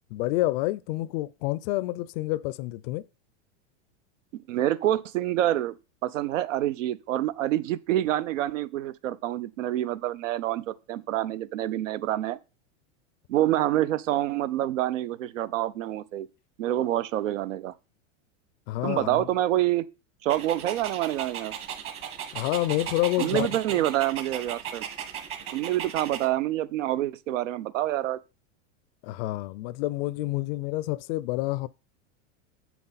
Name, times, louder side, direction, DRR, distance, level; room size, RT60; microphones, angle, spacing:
voice 1, 0.1-3.0 18.7-19.3 22.3-23.5 29.0-31.7, left 17 dB, 50° left, 0.5 m, -28 dB
voice 2, 4.5-5.7 6.0-12.4 13.3-16.3 16.6-17.7 18.8-19.9 20.2-21.5 23.2-24.8 25.5-28.2, right 13 dB, 85° right, 0.7 m, -27 dB
Dog, 20.3-26.3, right 9 dB, 35° right, 1.4 m, -36 dB
7.1 x 5.9 x 4.1 m
supercardioid pair, 135°, 37 cm